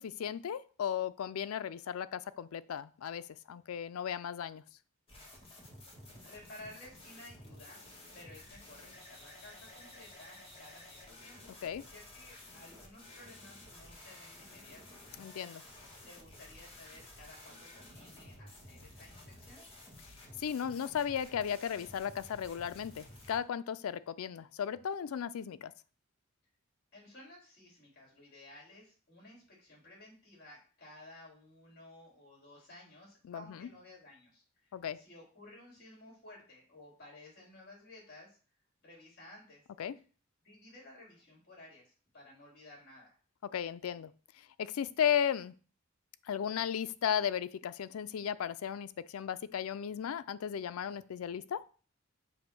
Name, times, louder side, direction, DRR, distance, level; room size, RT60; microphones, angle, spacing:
voice 1, 0.0-4.6 11.6-11.8 15.2-15.6 20.4-25.7 33.3-33.7 34.7-35.0 39.8-40.0 43.4-44.1 44.4-45.5 46.3-51.6, left 8 dB, 90° left, 15 dB, 0.4 m, -35 dB
sound 1, 5.1-23.4, left 1 dB, 25° left, 1.8 m, -53 dB
voice 2, 6.2-7.8 8.1-11.5 11.8-15.0 16.0-19.7 26.9-38.4 38.8-39.6 40.4-43.2, left 1 dB, 50° left, -3 dB, 3.7 m, -55 dB
7.2 x 2.9 x 5.9 m, 0.40 s
head